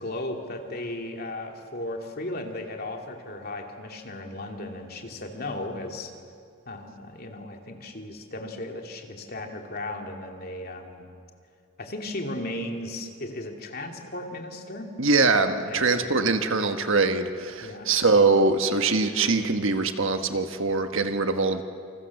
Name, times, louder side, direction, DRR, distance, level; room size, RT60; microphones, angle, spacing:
voice 1, 0.0-6.1 6.7-11.0 11.8-14.9 15.6-16.3 17.6-18.3, left 1 dB, 45° left, 2 dB, 2.7 m, -36 dB
voice 2, 15.0-21.6, right 3 dB, 60° right, 7 dB, 1.5 m, -23 dB
28.5 x 26.5 x 7.3 m, 2.3 s
head